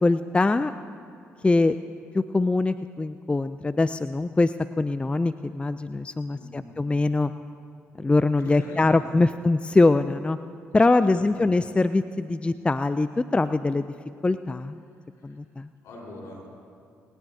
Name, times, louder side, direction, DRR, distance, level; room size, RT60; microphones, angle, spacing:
voice 1, 0.0-0.7 1.4-1.8 2.1-7.3 8.0-10.4 10.7-13.9 14.2-14.8 15.2-15.7, left 3 dB, 20° left, 12 dB, 0.4 m, -23 dB
voice 2, 6.3-6.8 8.4-9.0 11.0-11.5 15.1-15.4 15.8-16.5, left 2 dB, 70° left, -2 dB, 4.5 m, -43 dB
20.5 x 18.5 x 2.8 m, 2.4 s
supercardioid pair, 55°, 5 cm